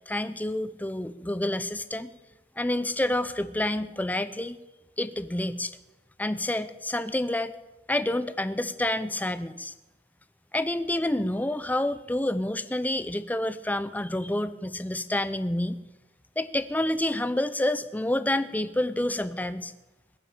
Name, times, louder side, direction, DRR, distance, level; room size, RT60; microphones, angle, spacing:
voice 1, 0.1-2.1 2.6-4.6 5.0-5.8 6.2-7.5 7.9-9.7 10.5-15.8 16.4-19.7, left 1 dB, 10° left, 13 dB, 0.6 m, -28 dB
20.5 x 7.1 x 8.5 m, 1.1 s
head